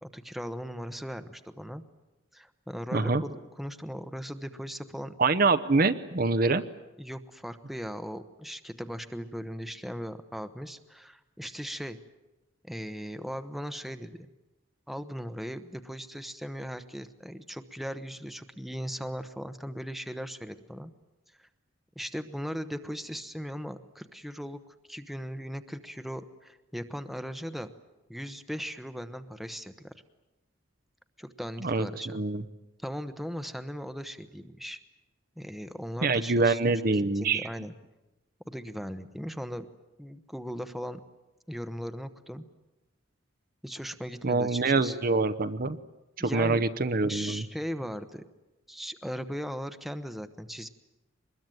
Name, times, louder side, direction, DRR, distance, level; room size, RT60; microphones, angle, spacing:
voice 1, 0.0-1.8 2.3-5.1 7.0-12.0 12.6-14.2 14.9-20.9 21.4-21.5 22.0-24.6 24.9-27.7 28.1-29.9 31.2-32.2 32.8-34.8 35.4-36.6 36.9-37.7 38.5-39.7 40.0-41.0 41.5-42.4 43.6-45.0 46.2-46.6 47.1-48.3 48.7-50.7, equal, ahead, 9 dB, 1.0 m, -38 dB
voice 2, 2.9-3.2 5.2-6.6 31.6-32.4 36.0-37.5 44.2-45.8 46.2-47.4, right 3 dB, 45° right, 11 dB, 0.8 m, -25 dB
24.5 x 21.0 x 9.2 m, 1.0 s
head